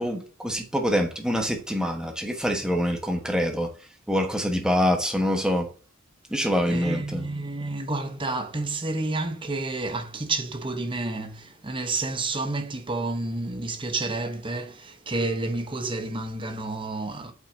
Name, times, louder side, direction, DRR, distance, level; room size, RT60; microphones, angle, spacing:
voice 1, 0.0-3.7 4.1-5.7 6.3-7.3, equal, 5° right, 1.2 m, -25 dB
voice 2, 6.4-17.3, right 2 dB, 25° right, 0.9 m, -30 dB
8.1 x 5.6 x 2.8 m
head